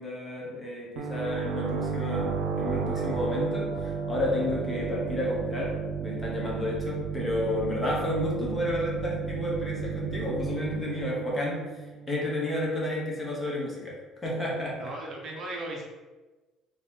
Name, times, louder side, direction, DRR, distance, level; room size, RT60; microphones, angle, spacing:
voice 1, 0.0-11.7 12.1-14.9, left 1 dB, 15° left, -4 dB, 1.0 m, -31 dB
sound 1, 1.0-12.4, right 5 dB, 80° right, 0.6 m, -33 dB
voice 2, 14.8-15.8, right 2 dB, 35° right, -1 dB, 0.7 m, -36 dB
4.0 x 2.9 x 4.2 m, 1.2 s
cardioid pair, 175°, 0 cm